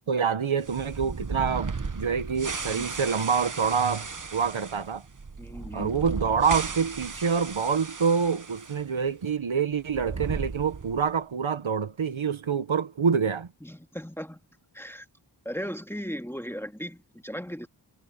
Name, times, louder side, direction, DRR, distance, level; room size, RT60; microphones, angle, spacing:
voice 1, 0.1-5.0 5.7-13.5, right 6 dB, 75° right, 1.1 m, -26 dB
sound 1, 0.6-8.8 9.1-9.2 9.8-11.2, right 4 dB, 40° right, 1.1 m, -36 dB
voice 2, 5.4-5.9 13.6-14.4 14.7-15.1 15.5-17.7, equal, 5° left, 1.9 m, -37 dB
wide cardioid pair, 50°, 48 cm